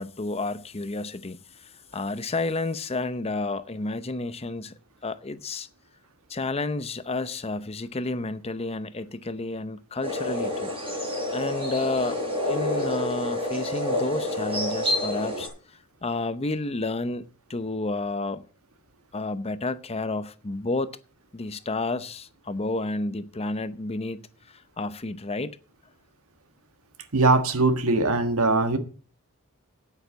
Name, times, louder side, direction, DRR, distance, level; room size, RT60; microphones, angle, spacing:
voice 1, 0.0-4.7 5.0-5.7 6.3-11.0 11.3-12.2 12.4-18.5 19.1-20.9 21.3-24.2 24.5-25.6, left 2 dB, 30° left, 0.7 m, -31 dB
sound 1, 10.0-15.5, left 1 dB, 25° right, 6.6 m, -28 dB
voice 2, 27.1-28.8, right 3 dB, 75° right, 1.5 m, -21 dB
9.3 x 9.0 x 7.0 m
head